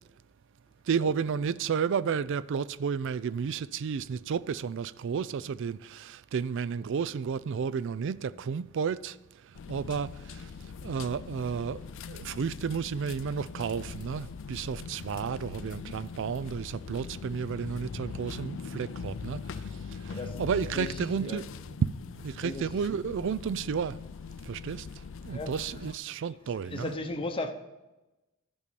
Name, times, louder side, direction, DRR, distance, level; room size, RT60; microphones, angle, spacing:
voice 1, 0.9-9.2 9.4-10.5 10.8-21.5 21.8-21.9 22.2-24.0 24.4-24.9 25.2-26.9, right 6 dB, 55° right, 0.3 m, -32 dB
sound 1, 9.5-26.0, left 5 dB, 60° left, 0.4 m, -41 dB
voice 2, 20.0-21.4 22.4-22.8 25.3-26.0 26.5-27.5, left 2 dB, 25° left, 0.8 m, -37 dB
11.5 x 5.2 x 6.9 m
head